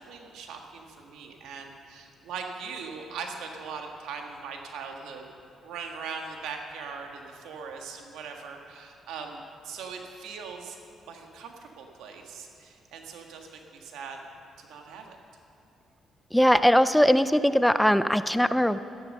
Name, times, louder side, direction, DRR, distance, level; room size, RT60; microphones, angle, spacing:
voice 1, 0.0-5.3 5.6-10.8 11.1-14.2 14.6-15.2, right 5 dB, 85° right, 3 dB, 1.6 m, -40 dB
voice 2, 16.3-18.8, equal, 5° left, 13 dB, 0.4 m, -20 dB
13.0 x 11.0 x 6.6 m, 2.7 s
cardioid pair, 90°, 0 cm